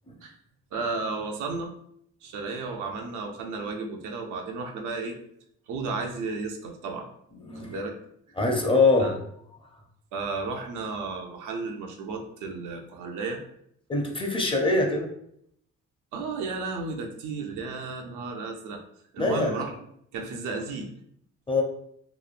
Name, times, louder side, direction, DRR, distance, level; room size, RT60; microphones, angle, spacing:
voice 1, 0.7-1.7 2.2-5.2 5.7-7.1 7.6-7.9 9.0-9.2 10.1-13.4 16.1-18.8 19.1-19.7 20.1-20.9, right 3 dB, 85° right, 3 dB, 0.5 m, -33 dB
voice 2, 7.4-7.8 8.4-9.2 13.9-15.1 19.2-19.5 21.5-21.6, left 3 dB, 20° left, 2 dB, 0.5 m, -23 dB
3.0 x 2.1 x 2.4 m, 0.70 s
cardioid pair, 90°, 30 cm